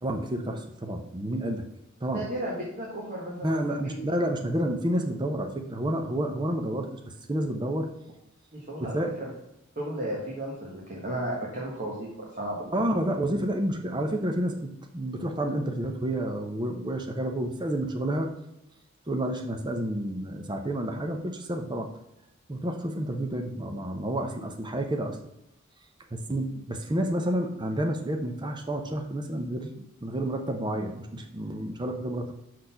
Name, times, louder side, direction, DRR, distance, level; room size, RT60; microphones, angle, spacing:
voice 1, 0.0-1.6 2.0-2.2 3.4-7.0 7.3-7.9 8.8-9.1 12.7-18.3 19.1-21.9 22.5-25.2 26.1-29.7 30.0-32.3, right 1 dB, 20° right, 4 dB, 0.7 m, -30 dB
voice 2, 2.1-4.0 8.5-9.3 9.8-12.1 12.4-12.7, right 1 dB, 40° right, -5 dB, 1.6 m, -34 dB
6.5 x 4.2 x 5.6 m, 0.84 s
head